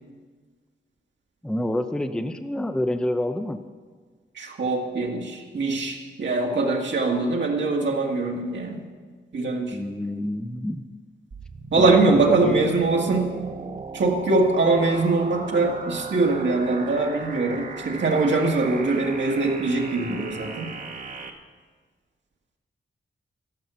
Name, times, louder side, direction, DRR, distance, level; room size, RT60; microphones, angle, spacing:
voice 1, 1.4-3.6 9.7-10.8 11.8-12.7 20.1-20.2, left 1 dB, 5° left, 8 dB, 0.5 m, -27 dB
voice 2, 4.4-8.8 9.3-9.8 11.7-13.3 13.9-20.7, right 3 dB, 65° right, 0 dB, 1.8 m, -22 dB
sound 1, 11.3-21.3, right 4 dB, 45° right, 1.1 m, -37 dB
12.5 x 12.0 x 6.8 m, 1.5 s
wide cardioid pair, 170°, 20 cm